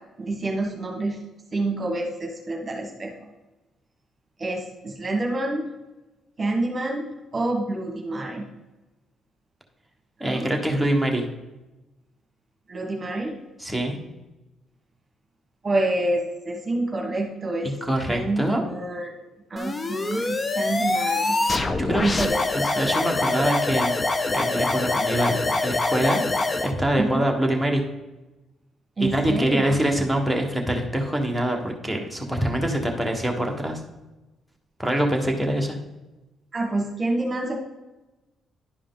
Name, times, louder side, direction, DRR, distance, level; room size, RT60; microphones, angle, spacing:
voice 1, 0.2-1.2 1.5-3.3 4.4-5.7 6.4-8.4 10.2-10.5 12.7-13.3 15.6-17.7 18.1-19.2 19.5-21.4 22.0-22.4 27.0-27.2 29.0-29.7 36.5-37.6, right 2 dB, 30° right, 1 dB, 1.5 m, -27 dB
voice 2, 10.2-11.3 13.6-14.0 17.9-18.6 21.8-24.0 24.3-26.2 26.6-27.8 29.0-33.8 34.8-35.8, right 1 dB, ahead, 0 dB, 1.4 m, -24 dB
sound 1, 19.6-26.7, left 2 dB, 30° left, 0.7 m, -24 dB
11.0 x 4.9 x 3.9 m, 1.1 s
cardioid pair, 90°, 0 cm